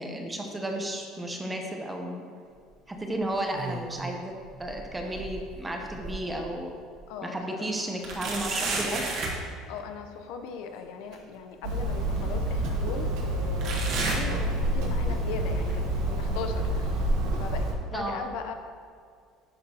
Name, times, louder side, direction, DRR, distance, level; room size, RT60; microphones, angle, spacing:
voice 1, 0.0-2.2 2.9-4.3 4.6-6.7 7.2-9.0 17.9-18.3, right 1 dB, 10° right, 2 dB, 0.7 m, -33 dB
sound 1, 3.3-4.2 4.5-6.4 6.9-7.0 8.0-9.4 11.1-11.2 12.2-12.3 13.6-15.0 15.3-15.7 16.4-16.5 17.4-17.5, right 3 dB, 50° right, 1.4 m, -33 dB
voice 2, 7.1-7.9 9.5-18.5, left 6 dB, 75° left, 6 dB, 0.7 m, -39 dB
Hammer, 11.6-17.7, right 1 dB, 75° right, 1.1 m, -28 dB
9.8 x 5.9 x 2.8 m, 2.2 s
cardioid pair, 165°, 0 cm